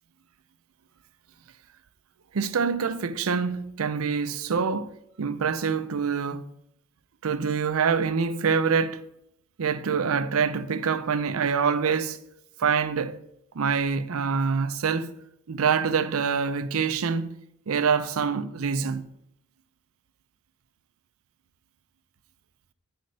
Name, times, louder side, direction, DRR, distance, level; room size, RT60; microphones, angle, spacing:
voice 1, 2.3-4.9 5.2-6.5 7.2-9.0 9.6-12.2 12.6-13.2 13.6-15.2 15.5-17.4 17.7-19.1, right 6 dB, 85° right, 0.5 m, -25 dB
9.4 x 4.4 x 5.3 m
head